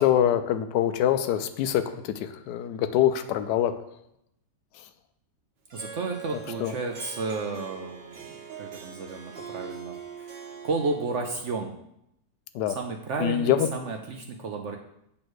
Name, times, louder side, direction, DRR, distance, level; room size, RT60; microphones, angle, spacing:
voice 1, 0.0-3.7 4.7-4.9 6.6-6.7 12.5-12.8 13.2-13.7, left 11 dB, 75° left, 9 dB, 1.1 m, -24 dB
voice 2, 5.7-11.8 12.7-14.8, right 3 dB, 70° right, 3 dB, 0.7 m, -32 dB
Harp, 5.7-11.5, right 7 dB, 90° right, 1.8 m, -42 dB
8.5 x 3.2 x 6.1 m, 0.79 s
omnidirectional pair, 1.9 m